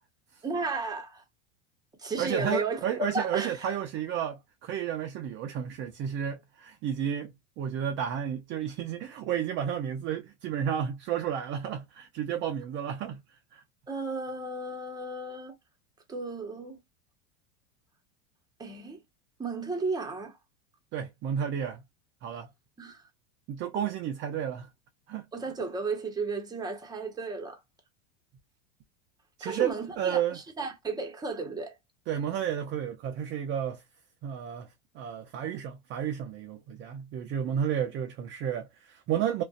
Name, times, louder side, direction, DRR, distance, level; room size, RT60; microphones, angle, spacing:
voice 1, 0.4-1.2 2.0-3.7 13.9-15.5 16.1-16.8 18.6-19.0 19.4-20.4 22.8-23.0 25.3-27.6 29.4-31.8, right 3 dB, 10° right, 0.8 m, -34 dB
voice 2, 2.2-13.6 20.9-21.8 22.2-22.5 23.5-24.7 25.1-25.2 29.4-30.4 32.1-33.8 34.2-34.7 34.9-39.4, right 9 dB, 35° right, 0.4 m, -32 dB
2.4 x 2.2 x 2.3 m
supercardioid pair, 115°, 35 cm